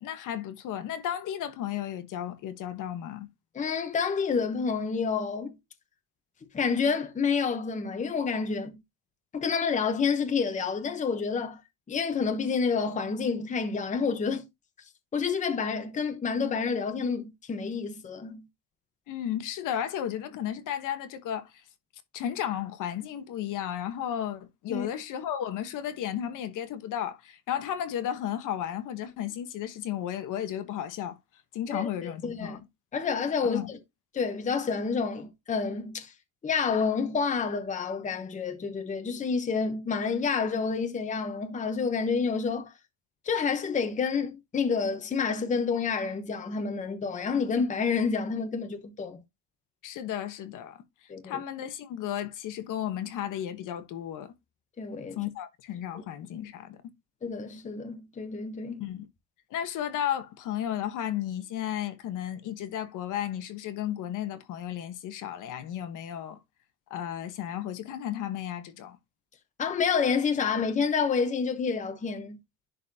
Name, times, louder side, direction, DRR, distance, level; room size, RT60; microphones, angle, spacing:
voice 1, 0.0-3.3 19.1-21.5 22.1-31.2 31.5-32.6 33.4-33.7 49.8-50.8 51.2-54.3 55.2-56.8 58.8-59.1 59.5-66.4 66.9-69.0, left 10 dB, 55° left, 1.2 m, -34 dB
voice 2, 3.5-5.5 6.5-8.7 9.3-11.6 11.9-14.5 15.1-18.4 24.7-24.9 31.7-32.6 32.9-33.8 34.1-36.1 36.4-42.7 43.2-49.2 51.1-51.4 54.8-55.2 55.9-56.0 57.2-58.8 69.6-72.4, left 5 dB, 20° left, 1.0 m, -29 dB
11.0 x 4.1 x 2.8 m
cardioid pair, 145°, 36 cm